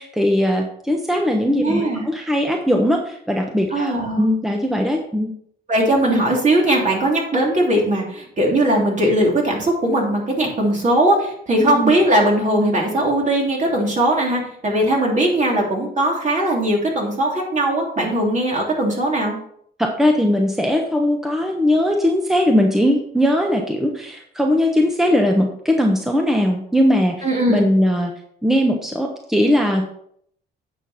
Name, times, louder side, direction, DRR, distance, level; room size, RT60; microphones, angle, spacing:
voice 1, 0.0-5.3 11.6-11.9 19.8-28.1 28.4-29.9, left 1 dB, ahead, 2 dB, 1.1 m, -19 dB
voice 2, 1.6-2.0 3.7-4.3 5.7-19.4 27.2-27.7, right 1 dB, 40° right, -1 dB, 3.3 m, -19 dB
9.1 x 6.0 x 4.3 m, 0.67 s
cardioid pair, 90°, 20 cm